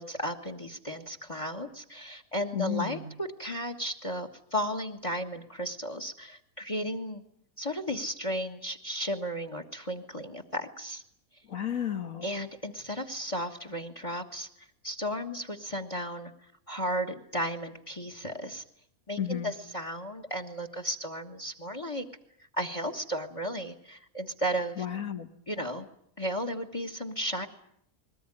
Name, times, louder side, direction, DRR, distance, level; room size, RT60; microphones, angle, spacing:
voice 1, 0.0-7.2 7.6-11.0 12.2-16.3 16.7-18.6 19.1-22.0 22.6-24.9 25.5-25.9 26.2-27.5, equal, 25° left, 7 dB, 1.6 m, -34 dB
voice 2, 2.5-3.1 11.5-12.3 19.2-19.5 24.8-25.3, left 9 dB, 70° left, 5 dB, 1.8 m, -32 dB
21.5 x 19.0 x 10.0 m, 0.71 s
omnidirectional pair, 1.5 m